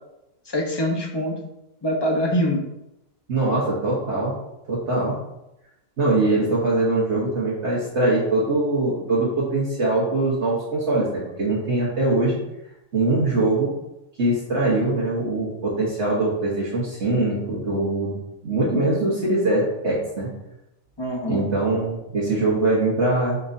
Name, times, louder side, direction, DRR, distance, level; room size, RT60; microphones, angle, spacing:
voice 1, 0.5-1.3 1.8-2.6 21.0-21.5, equal, 20° left, 1 dB, 0.9 m, -24 dB
voice 2, 3.3-4.3 4.7-5.1 6.0-12.4 12.9-13.7 14.2-18.2 18.4-20.3 21.2-23.4, right 2 dB, 55° right, -7 dB, 1.6 m, -22 dB
6.5 x 6.4 x 2.7 m, 0.90 s
omnidirectional pair, 1.4 m